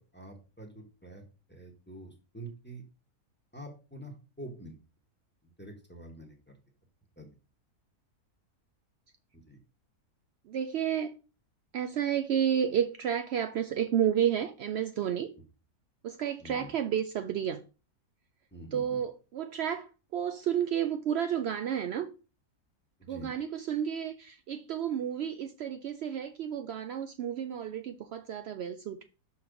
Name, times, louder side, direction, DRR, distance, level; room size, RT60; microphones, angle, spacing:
voice 1, 0.1-1.2 1.5-2.8 3.5-4.7 5.6-6.4 7.2-7.3 9.5-9.6 16.4-16.7 18.5-19.0 23.0-23.3, right 1 dB, 10° left, 1.1 m, -46 dB
voice 2, 10.5-11.2 11.7-15.3 16.0-17.6 18.7-22.1 23.1-29.0, right 9 dB, 85° right, 0.5 m, -31 dB
5.8 x 4.3 x 5.0 m
omnidirectional pair, 1.6 m